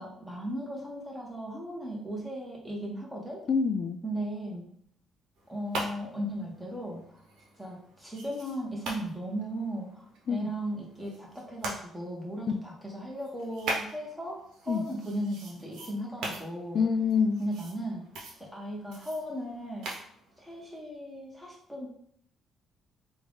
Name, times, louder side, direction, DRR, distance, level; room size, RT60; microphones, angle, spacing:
voice 1, 0.0-3.4 4.0-4.7 5.5-7.2 7.6-16.8 17.4-18.1 18.4-19.9 20.4-21.9, right 1 dB, 5° right, -3 dB, 1.5 m, -36 dB
voice 2, 3.5-4.0 10.3-10.5 12.5-12.6 14.7-14.9 16.7-17.4, left 5 dB, 55° left, 10 dB, 0.3 m, -26 dB
sound 1, 5.4-11.7 12.3-20.8, right 2 dB, 80° right, 0.9 m, -42 dB
3.5 x 2.5 x 3.7 m, 0.66 s
supercardioid pair, 75°, 0 cm